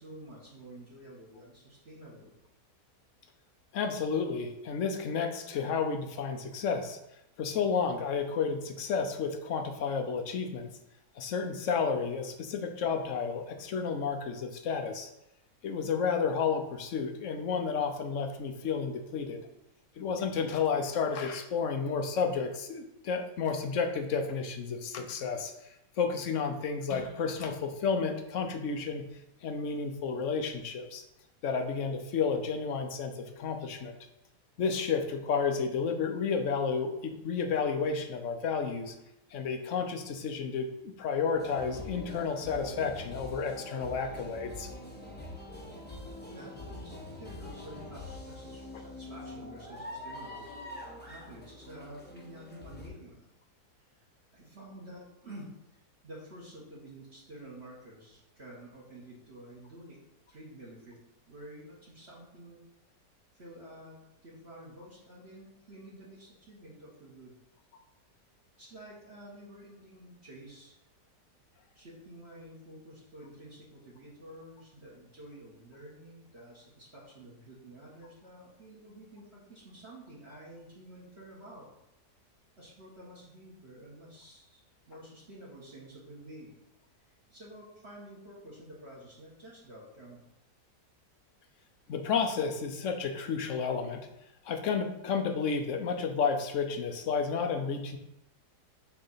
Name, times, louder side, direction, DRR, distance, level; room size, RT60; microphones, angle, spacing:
voice 1, 0.0-2.4 46.3-50.4 51.1-53.3 54.3-55.6 56.0-60.0 60.3-61.0 61.3-62.6 63.3-64.0 64.2-67.4 68.6-70.8 71.7-81.7 82.6-84.6 84.9-86.6 87.3-90.2, right 1 dB, 40° right, -6 dB, 1.7 m, -50 dB
voice 2, 3.7-7.0 7.4-10.7 11.2-15.1 15.6-19.4 20.0-29.1 29.4-31.0 31.4-34.0 34.6-38.9 39.3-44.7 91.9-94.1 94.4-98.0, left 5 dB, 60° left, 6 dB, 0.9 m, -31 dB
sound 1, 41.3-52.9, left 1 dB, 10° left, 0.8 m, -44 dB
7.0 x 3.3 x 5.6 m, 0.85 s
omnidirectional pair, 1.8 m